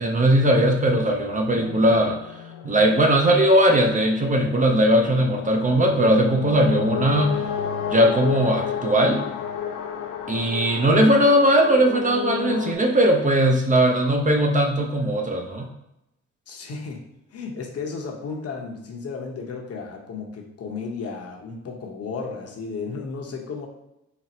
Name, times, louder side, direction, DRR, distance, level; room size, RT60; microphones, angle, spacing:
voice 1, 0.0-2.2 2.6-7.4 7.9-9.2 10.3-15.7, right 1 dB, 25° right, 2 dB, 0.5 m, -19 dB
sound 1, 1.5-12.8, left 8 dB, 85° left, 0.5 m, -32 dB
voice 2, 16.5-17.1 17.3-23.7, left 4 dB, 55° left, 1 dB, 0.8 m, -34 dB
4.1 x 2.0 x 4.1 m, 0.88 s
cardioid pair, 90°, 30 cm